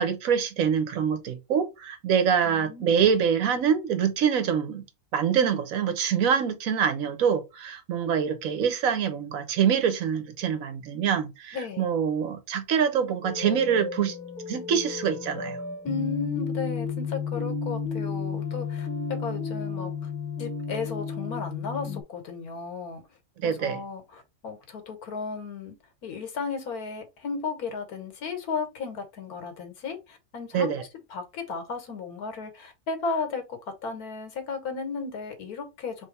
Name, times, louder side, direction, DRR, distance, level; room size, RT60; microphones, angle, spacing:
voice 1, 0.0-4.8 5.1-14.2 14.5-15.6 23.4-23.8 30.5-30.8, right 7 dB, 70° right, 1.2 m, -25 dB
voice 2, 2.4-3.0 11.5-11.9 15.8-20.1 20.4-23.0 23.4-25.8 26.0-36.1, left 4 dB, 85° left, 1.7 m, -34 dB
sound 1, 13.2-22.0, left 5 dB, 5° left, 1.0 m, -32 dB
3.4 x 3.3 x 4.1 m
omnidirectional pair, 1.5 m